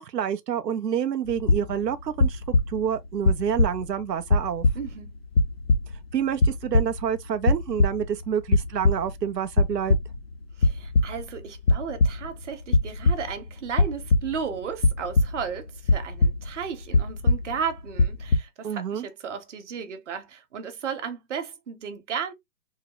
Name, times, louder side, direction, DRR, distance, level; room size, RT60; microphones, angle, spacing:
voice 1, 0.0-2.4 2.7-4.6 6.1-10.0 18.6-19.1, right 8 dB, 90° right, 0.6 m, -28 dB
sound 1, 1.3-1.9 2.2-3.0 3.3-4.0 4.3-5.1 5.4-6.1 6.4-7.2 7.4-8.2 8.5-9.2 9.5-10.3 10.6-11.4 11.6-12.4 12.7-13.4 13.7-15.6 15.9-16.6 16.9-17.7 18.0-18.4, left 3 dB, 45° left, 0.4 m, -22 dB
voice 2, 4.7-5.1 10.6-22.3, right 6 dB, 50° right, 1.0 m, -34 dB
3.6 x 2.0 x 2.9 m
hypercardioid pair, 145°, 48 cm